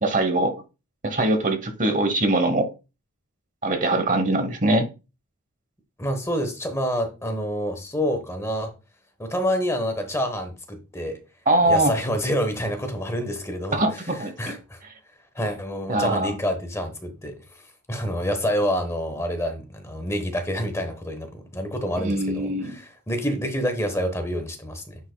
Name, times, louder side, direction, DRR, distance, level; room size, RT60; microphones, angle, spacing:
voice 1, 0.0-0.6 1.0-2.7 3.6-4.8 11.5-11.9 13.7-14.6 15.9-16.3 22.0-22.8, right 2 dB, 35° right, 1.0 m, -22 dB
voice 2, 6.0-8.7 9.2-11.2 11.6-14.8 15.3-17.3 17.9-25.0, equal, 15° left, 1.1 m, -27 dB
9.8 x 5.3 x 2.3 m
head